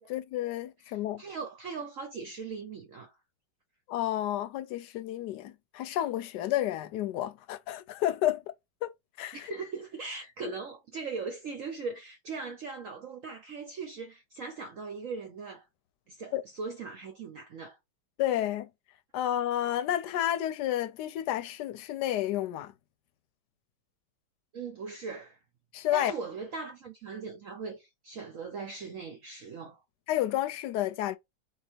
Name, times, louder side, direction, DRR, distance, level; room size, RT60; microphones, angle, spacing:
voice 1, 0.1-1.2 3.9-8.4 8.8-8.9 9.2-9.4 16.3-16.4 18.2-18.7 19.1-22.7 25.7-26.1 30.1-31.2, left 12 dB, 75° left, 1.2 m, -30 dB
voice 2, 0.8-3.2 9.3-15.7 16.1-17.8 24.5-25.4 25.9-29.8, right 4 dB, 55° right, 1.0 m, -39 dB
3.8 x 2.9 x 4.4 m
omnidirectional pair, 1.9 m